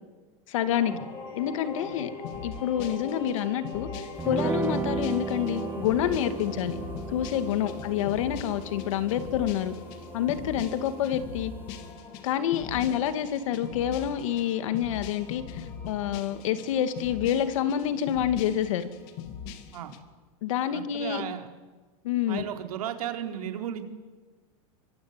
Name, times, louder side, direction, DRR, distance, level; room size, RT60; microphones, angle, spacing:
voice 1, 0.5-0.9 1.4-2.1 2.4-3.9 4.2-6.8 7.1-9.7 10.1-11.5 12.2-18.9 20.4-21.2 22.0-22.4, left 10 dB, 60° left, 10 dB, 2.4 m, -28 dB
sound 1, 0.6-19.9, left 4 dB, 25° left, 7.6 m, -44 dB
sound 2, 2.2-20.0, left 8 dB, 40° left, 2.3 m, -42 dB
sound 3, 4.2-11.9, right 5 dB, 10° right, 0.9 m, -36 dB
voice 2, 20.7-21.5 22.3-23.8, right 10 dB, 85° right, 5 dB, 4.3 m, -36 dB
24.5 x 24.0 x 9.8 m, 1.3 s
supercardioid pair, 170°, 18 cm